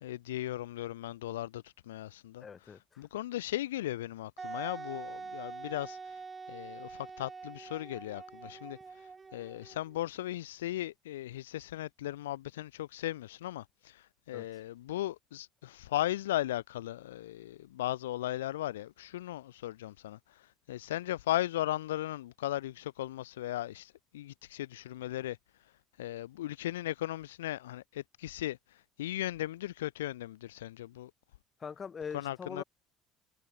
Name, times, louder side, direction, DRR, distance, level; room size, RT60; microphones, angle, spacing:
voice 1, 0.0-2.4 3.0-6.0 6.5-8.8 9.3-20.2 20.7-25.4 26.0-28.6 29.0-31.1 32.1-32.6, left 14 dB, 80° left, 0.5 m, -37 dB
voice 2, 2.4-3.0 14.3-14.5 31.6-32.6, left 6 dB, 35° left, 1.5 m, -42 dB
Wind instrument woodwind instrument, 4.4-10.0, right 4 dB, 25° right, 1.4 m, -44 dB
hypercardioid pair, 60°, 0 cm